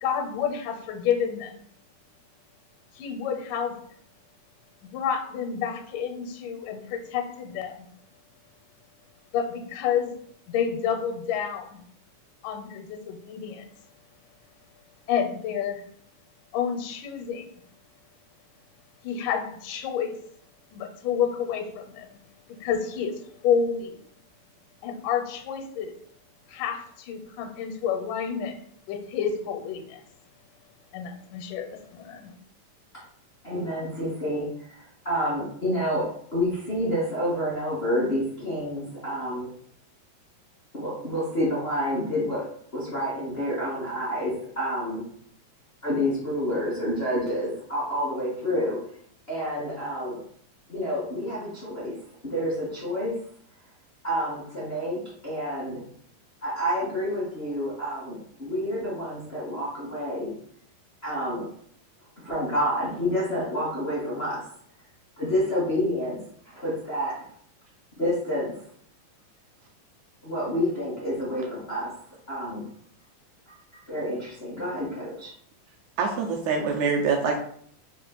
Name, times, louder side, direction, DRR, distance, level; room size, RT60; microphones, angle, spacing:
voice 1, 0.0-1.5 3.0-3.8 4.8-7.9 9.3-10.1 10.5-11.8 12.4-13.7 15.1-15.8 16.5-17.5 19.0-20.2 20.7-22.2 22.6-24.0 24.8-25.9 26.5-28.6 28.9-30.0 30.9-32.3, left 7 dB, 85° left, 6 dB, 2.2 m, -29 dB
voice 2, 33.4-39.5 40.7-45.0 45.8-48.8 49.3-50.2 50.7-51.9 52.2-53.1 54.0-55.8 56.4-60.3 61.0-61.5 62.2-64.5 65.2-66.2 66.4-67.3 68.0-68.5 70.2-72.0 72.3-72.6 73.5-75.3, equal, 60° left, -8 dB, 0.6 m, -29 dB
voice 3, 76.0-77.4, right 5 dB, 80° right, 1 dB, 1.7 m, -25 dB
5.0 x 2.4 x 3.8 m, 0.63 s
omnidirectional pair, 3.7 m